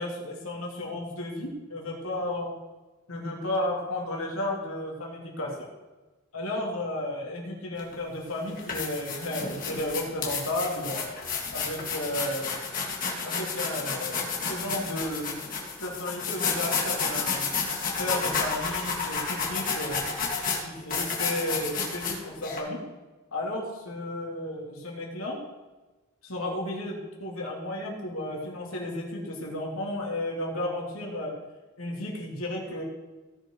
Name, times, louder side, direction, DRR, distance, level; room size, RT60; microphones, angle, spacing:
voice 1, 0.0-2.5 3.1-5.7 6.3-11.1 11.5-12.9 13.2-15.4 15.8-17.5 18.0-20.0 20.6-22.8 23.3-25.4 26.2-31.3 31.8-32.8, left 1 dB, 80° left, -1 dB, 2.8 m, -33 dB
sound 1, 7.8-7.9 8.5-22.6, left 5 dB, 40° left, 2.3 m, -31 dB
17.0 x 6.3 x 4.6 m, 1.2 s
head